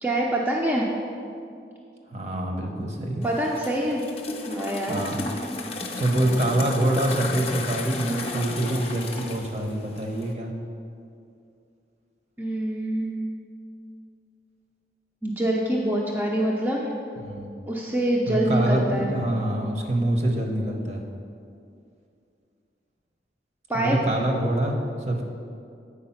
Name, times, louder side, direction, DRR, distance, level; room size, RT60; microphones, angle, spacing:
voice 1, 0.0-0.9 3.2-4.0 4.4-5.0 12.4-13.3 15.2-16.9 17.7-19.2 23.7-24.0, right 1 dB, 10° right, -3 dB, 0.5 m, -25 dB
voice 2, 2.1-3.2 4.9-5.3 6.0-10.5 17.2-17.5 18.3-21.0 23.7-24.8 25.1-25.2, right 1 dB, 40° right, 2 dB, 0.9 m, -25 dB
sound 1, 3.2-10.3, left 2 dB, 35° left, 0.7 m, -34 dB
8.5 x 4.8 x 5.7 m, 2.5 s
head